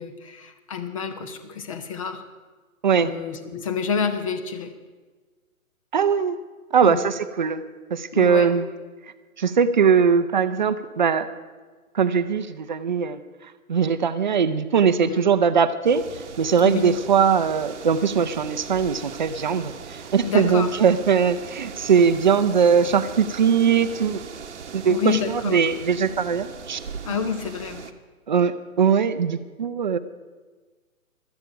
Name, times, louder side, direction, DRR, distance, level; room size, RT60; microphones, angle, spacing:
voice 1, 0.0-2.2 3.0-4.7 6.8-7.1 8.1-8.5 15.0-15.2 16.6-16.9 20.2-20.7 24.9-25.6 27.0-27.9, left 6 dB, 25° left, 9 dB, 0.9 m, -28 dB
voice 2, 5.9-6.4 6.7-7.6 7.9-8.6 9.4-11.3 11.9-13.2 13.7-16.0 16.4-24.2 24.7-26.8 28.3-30.0, right 6 dB, 35° right, 11 dB, 0.6 m, -20 dB
sound 1, 15.8-27.9, right 6 dB, 50° right, 1.1 m, -39 dB
16.5 x 12.5 x 5.7 m, 1.4 s
figure-of-eight pair, 140°, 43 cm